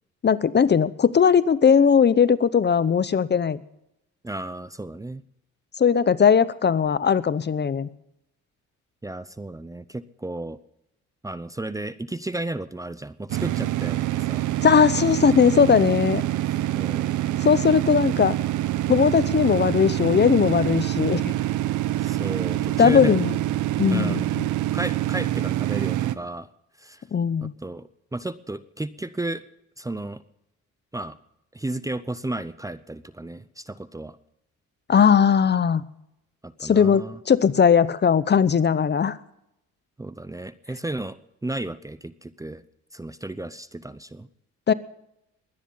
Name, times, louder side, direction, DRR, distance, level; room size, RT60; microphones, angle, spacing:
voice 1, 0.2-3.6 5.8-7.9 14.6-16.2 17.4-18.4 18.9-21.3 22.8-23.4 23.8-24.5 27.1-27.5 34.9-35.8 36.6-39.2 44.7-44.8, left 7 dB, 35° left, 17 dB, 0.8 m, -19 dB
voice 2, 4.2-5.2 9.0-10.6 11.2-14.5 16.8-17.1 22.0-23.1 23.9-24.2 24.7-26.5 26.8-27.0 27.4-29.4 29.8-30.2 30.9-31.2 31.5-34.2 36.4-37.2 40.0-42.6 42.9-44.3, right 2 dB, 10° right, 16 dB, 0.6 m, -33 dB
sound 1, 13.3-26.1, right 14 dB, 80° right, 0.8 m, -26 dB
22.0 x 10.0 x 5.6 m, 0.83 s
cardioid pair, 90°, 30 cm